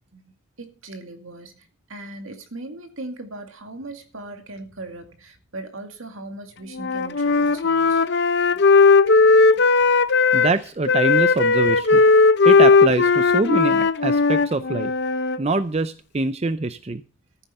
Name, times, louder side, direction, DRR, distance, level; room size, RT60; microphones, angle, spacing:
voice 1, 0.6-8.1, right 2 dB, 70° right, 6 dB, 2.2 m, -38 dB
Wind instrument woodwind instrument, 6.7-10.5 10.9-15.4, left 4 dB, 50° left, 0.6 m, -17 dB
voice 2, 10.3-12.0 12.4-14.9 15.4-17.0, right 3 dB, 30° right, 12 dB, 0.5 m, -24 dB
14.5 x 8.1 x 5.4 m, 0.37 s
head